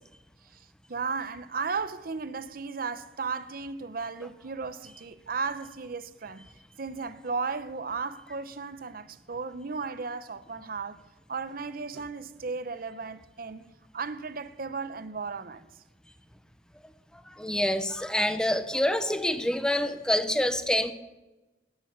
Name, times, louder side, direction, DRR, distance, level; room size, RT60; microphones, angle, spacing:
voice 1, 0.9-6.5 6.8-11.0 11.3-13.7 13.9-15.7, right 4 dB, 55° right, 0.8 m, -35 dB
voice 2, 17.4-20.9, left 1 dB, 5° left, 0.8 m, -26 dB
17.5 x 9.9 x 6.6 m
head